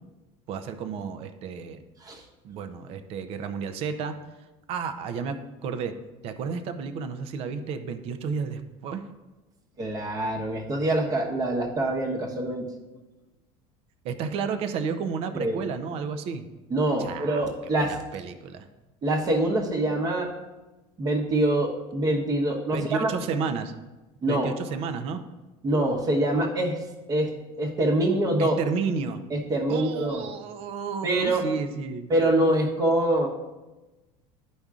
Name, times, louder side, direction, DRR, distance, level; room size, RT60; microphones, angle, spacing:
voice 1, 0.5-1.8 2.4-4.2 4.7-5.9 6.2-9.0 14.0-16.5 17.0-18.6 22.7-23.7 24.2-25.2 28.4-29.2 29.7-32.1, right 5 dB, 40° right, 9 dB, 0.6 m, -32 dB
voice 2, 9.8-12.7 15.3-15.6 16.7-18.0 19.0-20.3 21.0-23.1 24.2-24.5 25.6-26.8 27.1-27.3 27.6-28.5 29.3-30.2 31.0-31.4 32.1-33.3, right 1 dB, 25° right, 1 dB, 1.1 m, -25 dB
12.5 x 5.2 x 2.4 m, 1.1 s
cardioid pair, 165°, 14 cm